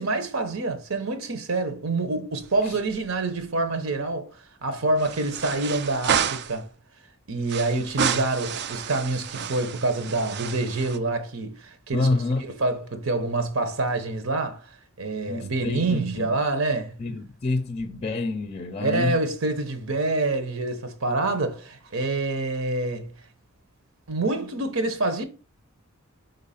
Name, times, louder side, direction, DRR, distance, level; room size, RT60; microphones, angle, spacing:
voice 1, 0.0-6.7 7.3-14.7 15.0-16.9 18.8-23.1 24.1-25.2, right 2 dB, 80° right, 0.9 m, -27 dB
sound 1, 2.4-3.2 3.4-3.5 5.0-6.6 7.5-11.0, right 7 dB, 55° right, 0.4 m, -30 dB
voice 2, 11.9-12.5 15.3-16.3 17.0-19.2, left 3 dB, 30° left, 0.5 m, -27 dB
4.6 x 3.9 x 5.6 m
head